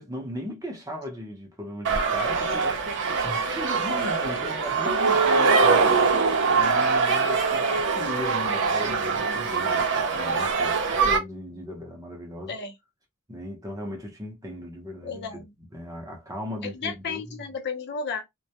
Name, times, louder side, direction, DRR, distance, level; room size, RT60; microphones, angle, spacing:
voice 1, 0.0-12.6 13.3-15.4 15.7-17.4, equal, 15° right, 0.6 m, -37 dB
sound 1, 1.8-11.2, right 4 dB, 55° right, 0.7 m, -23 dB
voice 2, 15.0-15.4 16.6-18.2, left 5 dB, 50° left, 0.6 m, -33 dB
2.2 x 2.1 x 2.7 m
head